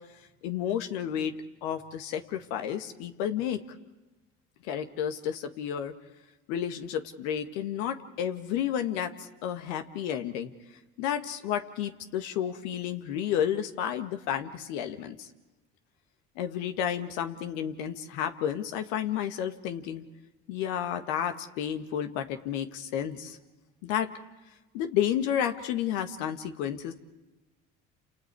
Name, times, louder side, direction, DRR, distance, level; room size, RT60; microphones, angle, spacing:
voice 1, 0.4-1.3 1.6-3.6 4.6-5.9 6.5-10.5 11.0-15.3 16.4-20.0 20.5-23.4 23.8-24.1 24.7-26.9, left 9 dB, 70° left, 8 dB, 1.9 m, -31 dB
30.0 x 28.0 x 4.8 m, 1.1 s
hypercardioid pair, 65°, 37 cm